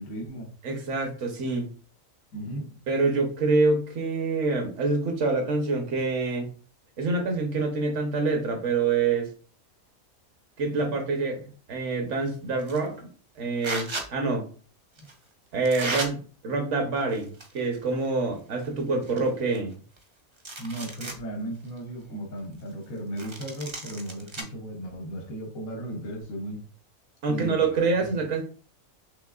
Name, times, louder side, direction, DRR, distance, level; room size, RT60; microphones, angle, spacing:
voice 1, 0.0-0.5 2.3-2.8 15.0-15.1 20.6-26.6 27.3-28.2, right 1 dB, 80° left, 1 dB, 1.3 m, -36 dB
voice 2, 0.6-1.7 2.9-6.5 7.0-9.3 10.6-13.1 13.4-14.4 15.5-19.7 27.2-28.4, right 3 dB, 65° right, 3 dB, 1.2 m, -26 dB
sound 1, 12.6-12.9 13.6-14.1 15.0-15.1 15.6-16.1 17.0-17.6 18.0-18.1 18.6-18.7 19.0-20.0 20.4-21.2 21.7-21.8 23.2-24.4, right 2 dB, 35° right, 0.4 m, -35 dB
5.8 x 3.1 x 2.3 m, 0.40 s
omnidirectional pair, 1.4 m